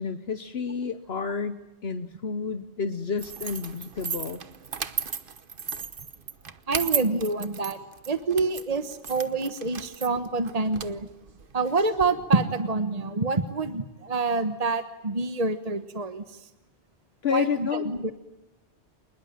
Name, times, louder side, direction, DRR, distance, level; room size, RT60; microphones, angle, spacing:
voice 1, 0.0-4.4 17.2-17.9, left 6 dB, 65° left, 10 dB, 1.3 m, -30 dB
sound 1, 3.2-12.0, right 6 dB, 55° right, 1.3 m, -35 dB
voice 2, 6.7-7.8 8.1-11.1 11.5-16.4 17.3-18.1, right 3 dB, 35° right, 10 dB, 1.3 m, -27 dB
27.0 x 20.5 x 9.1 m, 1.0 s
omnidirectional pair, 1.1 m